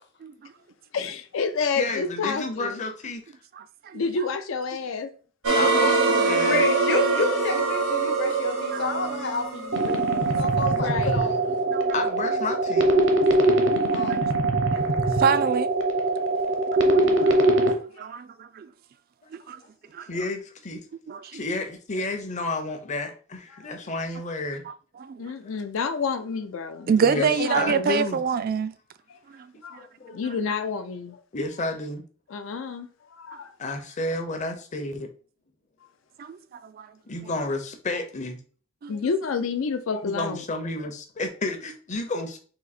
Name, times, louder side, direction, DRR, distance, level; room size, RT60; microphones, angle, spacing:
voice 1, 0.9-2.8 3.9-5.1 10.7-11.3 13.8-13.9 17.9-18.1 23.5-23.7 25.2-27.9 29.1-29.2 29.6-31.2 32.3-33.6 37.4-37.5 38.9-40.4, left 5 dB, 75° left, 0.4 m, -30 dB
voice 2, 1.8-3.2 5.5-6.7 11.9-13.0 20.1-20.8 21.3-24.6 27.0-28.2 29.8-30.2 31.3-32.0 33.6-35.1 37.1-38.4 40.0-42.4, left 2 dB, 35° left, 0.7 m, -31 dB
voice 3, 3.6-4.0 8.7-8.8 11.7-11.9 14.1-14.3 15.2-15.7 16.8-18.7 19.3-19.6 19.9-20.1 21.1-21.4 24.7-24.8 25.0-25.2 26.9-28.7 29.3-29.5 36.2-36.4 36.7-36.9 38.8-38.9, right 6 dB, 45° right, 0.3 m, -26 dB
sound 1, 5.4-10.4, right 3 dB, 80° right, 1.1 m, -24 dB
voice 4, 6.4-11.4 13.9-14.2, left 3 dB, 60° left, 0.9 m, -29 dB
sound 2, 9.7-17.7, right 2 dB, 65° right, 0.7 m, -22 dB
3.9 x 2.8 x 4.1 m
head